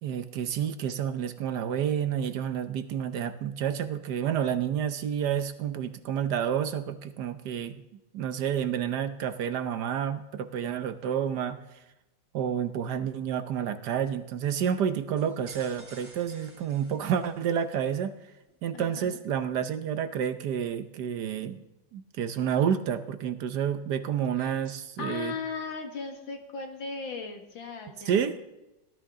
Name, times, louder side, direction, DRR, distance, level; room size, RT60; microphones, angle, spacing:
voice 1, 0.0-7.8 8.1-11.6 12.3-18.1 18.6-21.6 21.9-25.3 28.1-28.4, right 8 dB, 65° right, 11 dB, 1.3 m, -29 dB
sound 1, 15.2-17.7, right 2 dB, 85° right, 4.9 m, -51 dB
voice 2, 18.7-19.2 24.3-24.7 25.0-28.3, left 4 dB, 80° left, 4 dB, 2.5 m, -37 dB
18.5 x 12.5 x 3.8 m, 0.97 s
omnidirectional pair, 2.1 m